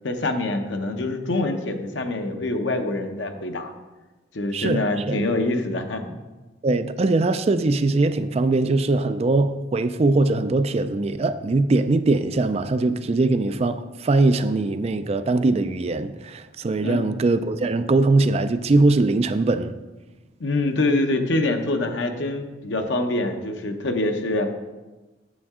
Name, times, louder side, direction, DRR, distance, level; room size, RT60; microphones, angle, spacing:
voice 1, 0.0-3.7 4.3-6.2 16.8-17.0 20.4-24.5, left 2 dB, 85° left, 0.8 m, -25 dB
voice 2, 4.5-5.2 6.6-19.7, right 2 dB, 35° right, 0.3 m, -21 dB
8.5 x 7.4 x 3.6 m
head